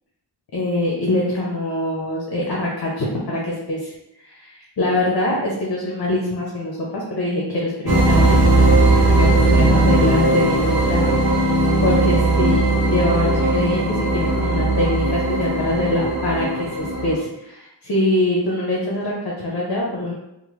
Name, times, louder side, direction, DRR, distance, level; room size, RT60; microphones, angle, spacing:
voice 1, 0.5-3.9 4.2-8.4 9.1-11.5 11.8-20.1, left 1 dB, 60° left, -3 dB, 0.7 m, -23 dB
sound 1, 7.9-17.2, right 2 dB, 60° right, 0.6 m, -18 dB
2.9 x 2.1 x 3.0 m, 0.89 s
wide cardioid pair, 75°, 43 cm